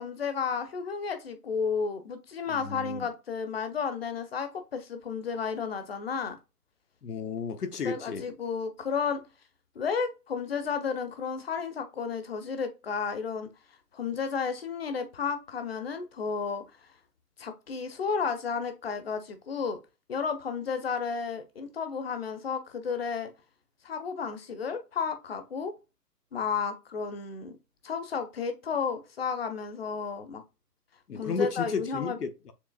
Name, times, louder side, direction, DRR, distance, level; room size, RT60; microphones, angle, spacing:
voice 1, 0.0-6.4 7.8-9.2 9.7-13.5 13.9-16.6 17.4-19.8 20.1-23.3 23.8-25.7 26.3-27.6 27.8-30.4 31.2-32.2, left 6 dB, 40° left, 0.8 m, -32 dB
voice 2, 2.5-3.1 7.0-8.2 31.1-32.5, left 5 dB, 70° left, 1.0 m, -33 dB
6.9 x 3.0 x 2.2 m
figure-of-eight pair, 150°, 48 cm